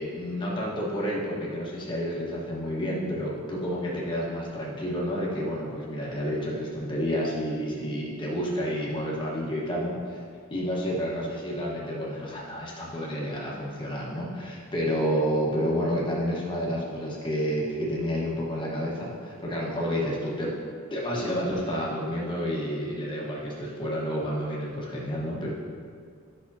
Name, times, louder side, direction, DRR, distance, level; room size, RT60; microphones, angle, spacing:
voice 1, 0.0-10.2 10.5-20.5 20.9-25.5, equal, 20° left, -4 dB, 1.3 m, -30 dB
10.5 x 6.0 x 2.8 m, 2.2 s
head